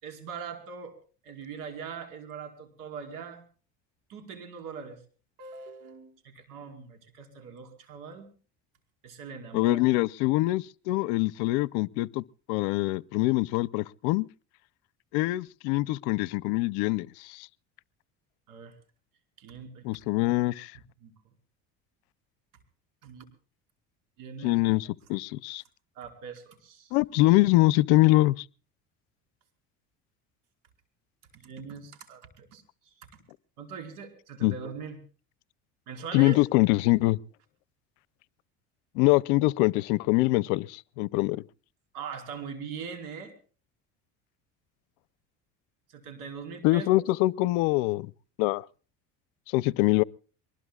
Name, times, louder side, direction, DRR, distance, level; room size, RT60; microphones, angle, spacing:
voice 1, 0.0-1.0 1.2-3.4 4.1-5.0 5.4-8.3 9.0-9.8 18.5-18.7 19.4-19.9 21.0-21.1 23.0-23.2 24.2-24.6 25.9-26.9 31.3-33.1 33.6-35.0 35.9-36.4 41.9-43.3 45.9-46.9, right 6 dB, 70° right, 4.9 m, -41 dB
voice 2, 9.5-12.2 12.5-14.3 15.1-17.5 19.8-20.7 24.4-25.6 26.9-28.4 34.4-34.5 36.1-37.2 39.0-41.4 46.6-48.1 48.4-48.6 49.5-50.0, left 20 dB, 85° left, 0.7 m, -24 dB
24.0 x 21.0 x 2.4 m
cardioid pair, 115°, 33 cm